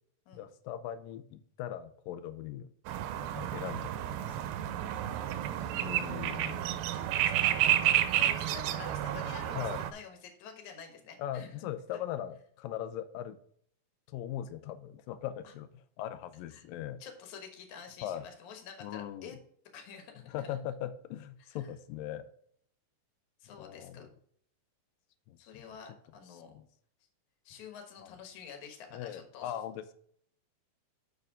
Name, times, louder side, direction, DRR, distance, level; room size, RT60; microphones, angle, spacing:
voice 1, 0.3-2.7 3.2-4.5 5.8-6.7 9.6-9.8 11.2-13.4 14.1-17.0 18.0-18.2 18.8-19.4 20.3-22.3 23.6-24.1 25.3-25.6 26.3-26.7 28.0-28.1 28.9-29.9, left 11 dB, 80° left, 12 dB, 2.1 m, -40 dB
sound 1, 2.9-9.9, right 12 dB, 85° right, 2.5 m, -31 dB
voice 2, 5.1-6.4 6.9-11.5 15.4-15.5 16.5-16.6 17.0-19.4 19.7-20.6 21.5-21.6 23.4-24.1 25.4-26.6 27.4-29.6, left 6 dB, 60° left, 4 dB, 2.4 m, -49 dB
6.8 x 6.6 x 3.6 m, 0.62 s
omnidirectional pair, 4.4 m